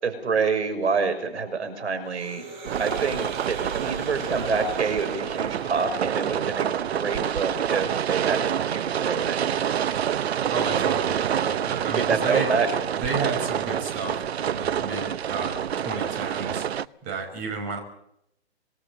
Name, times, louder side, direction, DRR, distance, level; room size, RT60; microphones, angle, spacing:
voice 1, 0.0-2.5 2.8-3.2 3.5-9.5 11.9-12.7, right 5 dB, 85° right, 8 dB, 6.4 m, -27 dB
sound 1, 2.1-6.1, right 5 dB, 45° right, 6.4 m, -41 dB
sound 2, 2.6-16.8, right 9 dB, 70° right, 0.9 m, -27 dB
voice 2, 10.5-12.5 12.9-16.7 17.0-17.8, right 3 dB, 25° right, 3 dB, 5.7 m, -32 dB
26.5 x 20.5 x 7.0 m, 0.77 s
hypercardioid pair, 150°, 33 cm